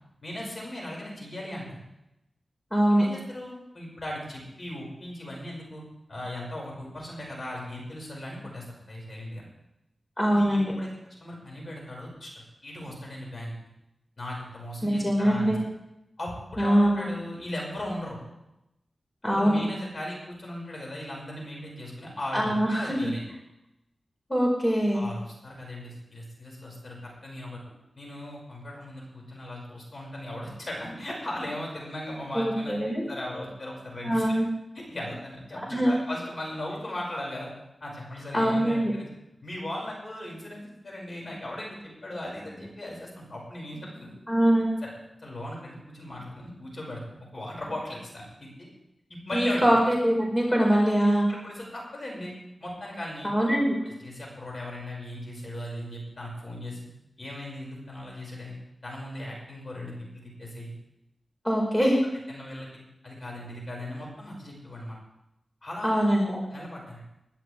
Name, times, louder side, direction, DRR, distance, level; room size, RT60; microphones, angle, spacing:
voice 1, 0.2-1.8 3.0-5.8 6.1-9.5 10.3-10.9 11.2-13.5 14.2-15.5 16.2-18.2 19.2-23.2 24.9-27.6 28.0-34.4 34.7-37.5 37.8-39.1 39.4-44.1 44.8-44.9 45.2-48.7 49.1-49.7 51.1-52.3 52.6-53.3 53.8-56.9 57.2-58.5 58.8-60.7 62.3-62.7 63.0-65.0 65.6-66.0 66.2-67.0, left 1 dB, 50° left, -2 dB, 6.3 m, -38 dB
voice 2, 2.7-3.0 10.2-10.7 14.8-15.6 16.6-17.1 19.2-19.6 22.3-23.1 24.3-25.0 32.3-33.0 34.0-34.5 35.7-35.9 38.3-38.9 44.3-44.7 49.3-51.3 53.2-53.8 61.4-62.0 65.8-66.3, equal, 20° left, -2 dB, 5.2 m, -23 dB
22.0 x 12.5 x 3.6 m, 0.88 s
wide cardioid pair, 65°, 0 cm